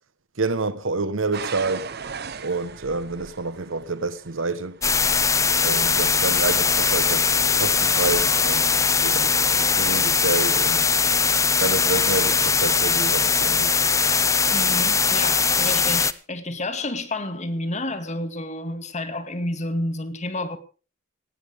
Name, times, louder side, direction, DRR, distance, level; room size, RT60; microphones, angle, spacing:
voice 1, 0.4-1.9 2.4-4.8 5.6-7.3 7.5-10.9 11.6-13.8, right 3 dB, 70° right, 1.2 m, -28 dB
sound 1, 1.3-10.1 10.9-11.3 11.9-12.0, right 6 dB, 50° right, 1.0 m, -40 dB
sound 2, 4.8-16.1, left 5 dB, 15° left, 0.7 m, -20 dB
voice 2, 14.5-20.6, left 1 dB, 35° left, 2.1 m, -30 dB
18.0 x 17.5 x 3.6 m
head